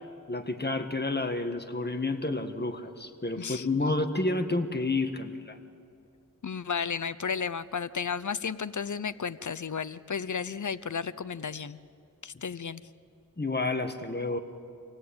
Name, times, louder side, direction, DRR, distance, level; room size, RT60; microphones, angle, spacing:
voice 1, 0.3-5.6 13.4-14.4, left 2 dB, 30° left, 7 dB, 1.7 m, -30 dB
voice 2, 6.4-11.8 12.2-12.8, left 6 dB, 60° left, 17 dB, 0.6 m, -33 dB
26.0 x 17.5 x 8.7 m, 2.4 s
wide cardioid pair, 45°, 33 cm